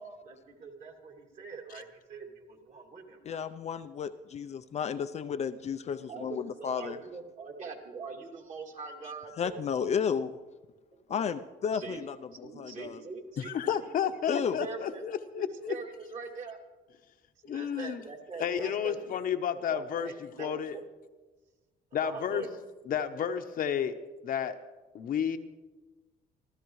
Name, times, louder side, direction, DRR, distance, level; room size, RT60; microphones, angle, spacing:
voice 1, 0.0-3.4 6.1-9.6 11.1-11.2 11.7-12.0 12.4-15.0 15.3-16.6 17.4-19.1 19.7-20.6 22.0-22.5, right 4 dB, 45° right, 2 dB, 2.7 m, -43 dB
voice 2, 3.3-7.0 9.4-10.4 11.1-13.0 14.3-14.6, left 7 dB, 40° left, 9 dB, 0.5 m, -33 dB
voice 3, 13.5-15.7 17.5-18.0 18.4-20.1 20.4-20.8 21.9-22.4 22.9-23.9 24.2-24.6 24.9-25.4, left 8 dB, 55° left, 7 dB, 1.0 m, -31 dB
25.0 x 15.0 x 3.2 m, 1.2 s
cardioid pair, 110°, 17 cm